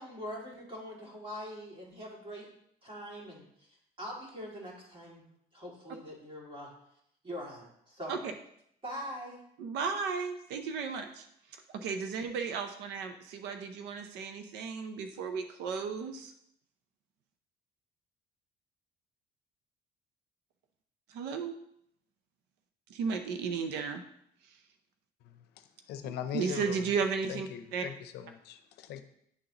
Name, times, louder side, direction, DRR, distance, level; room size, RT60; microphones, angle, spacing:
voice 1, 0.0-2.5 2.8-3.4 4.0-5.2 5.5-6.7 7.2-8.2 8.8-9.4, equal, 30° right, -3 dB, 2.4 m, -43 dB
voice 2, 9.6-11.3 11.7-16.3 21.1-21.5 22.9-24.0 24.4-24.6 26.3-27.9, right 5 dB, 85° right, 6 dB, 0.6 m, -34 dB
voice 3, 25.2-26.8 27.3-29.0, left 9 dB, 80° left, 10 dB, 0.6 m, -41 dB
9.8 x 3.9 x 2.9 m, 0.72 s
cardioid pair, 110°, 17 cm